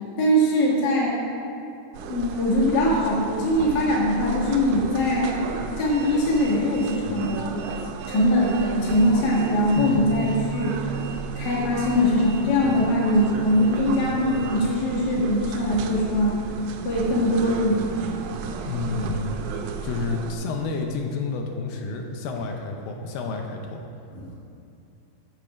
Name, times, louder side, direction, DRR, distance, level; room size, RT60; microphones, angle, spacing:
voice 1, 0.2-1.2 2.1-5.3 5.8-7.4 8.1-10.8 11.3-16.4 16.8-17.9 24.1-24.3, equal, 40° left, -5 dB, 1.5 m, -22 dB
sound 1, 1.9-20.4, right 5 dB, 90° right, 1.7 m, -33 dB
voice 2, 18.7-19.4 19.8-23.8, left 3 dB, 80° left, 3 dB, 2.4 m, -29 dB
8.2 x 7.0 x 4.9 m, 2.7 s
omnidirectional pair, 4.1 m